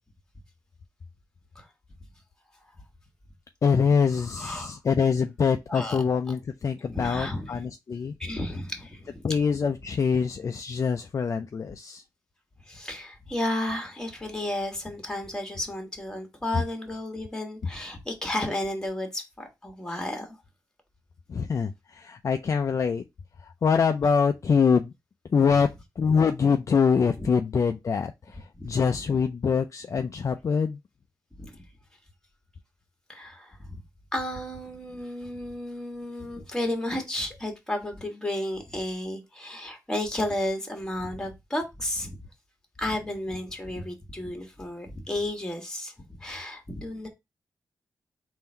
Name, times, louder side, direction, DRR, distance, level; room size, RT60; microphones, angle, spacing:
voice 1, 3.6-8.1 9.2-12.0 21.3-23.0 23.6-24.9 25.3-25.7 26.0-28.4 28.6-30.8, left 6 dB, 45° left, 0.4 m, -24 dB
voice 2, 4.2-4.8 5.7-6.0 6.9-7.6 8.2-9.2 12.7-20.4 27.2-27.3 28.5-29.2 31.4-31.6 33.1-33.8 34.1-42.2 42.8-47.1, left 1 dB, 10° left, 1.5 m, -33 dB
3.6 x 2.7 x 4.3 m
cardioid pair, 75°, 7 cm